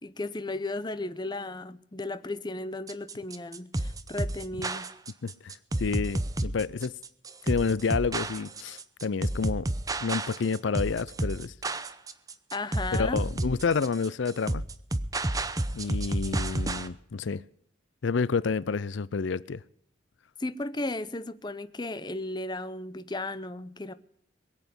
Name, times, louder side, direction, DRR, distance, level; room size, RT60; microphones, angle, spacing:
voice 1, 0.0-4.9 12.5-13.2 20.4-23.9, left 2 dB, 25° left, 0.7 m, -35 dB
sound 1, 2.9-16.9, right 1 dB, 20° right, 0.7 m, -31 dB
voice 2, 5.2-5.5 5.8-6.9 7.4-9.7 10.0-11.5 12.9-14.6 15.7-17.4 18.0-19.6, left 5 dB, 85° left, 0.5 m, -29 dB
22.0 x 8.2 x 6.9 m
head